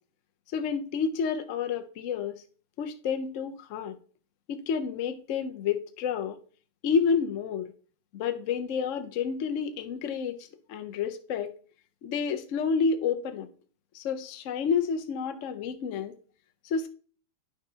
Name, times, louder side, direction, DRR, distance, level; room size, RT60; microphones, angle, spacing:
voice 1, 0.5-2.4 2.8-4.0 4.5-6.4 6.8-7.7 8.1-10.4 10.7-11.5 12.0-13.5 13.9-16.1 16.6-16.9, left 6 dB, 80° left, 0.6 m, -29 dB
9.8 x 6.2 x 2.8 m
omnidirectional pair, 2.4 m